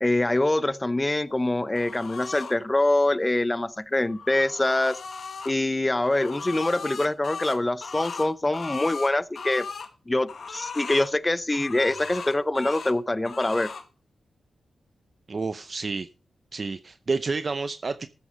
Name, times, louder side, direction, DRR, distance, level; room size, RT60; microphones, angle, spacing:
voice 1, 0.0-5.0 5.4-9.7 10.1-13.7, left 2 dB, 15° left, 0.7 m, -24 dB
sound 1, 1.7-2.6 3.9-5.5 6.0-9.9 10.3-11.1 11.5-13.0 13.2-13.8, left 5 dB, 65° left, 1.5 m, -37 dB
voice 2, 15.3-16.1 16.5-18.1, right 4 dB, 40° right, 0.6 m, -29 dB
13.5 x 8.2 x 5.2 m
wide cardioid pair, 100°, 0 cm